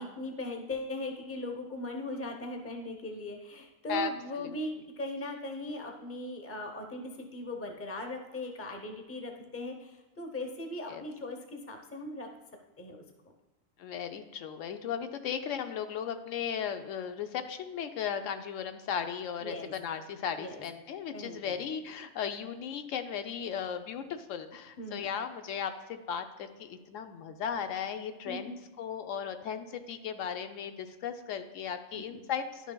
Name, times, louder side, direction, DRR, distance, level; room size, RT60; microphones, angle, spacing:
voice 1, 0.0-12.3 12.8-13.0 19.4-19.7 20.4-20.6 21.1-21.5 24.8-25.1 28.3-28.5 31.9-32.2, left 1 dB, 15° left, 3 dB, 0.6 m, -39 dB
voice 2, 13.8-32.7, left 8 dB, 80° left, 8 dB, 1.0 m, -36 dB
10.5 x 6.1 x 2.2 m, 1.1 s
omnidirectional pair, 1.3 m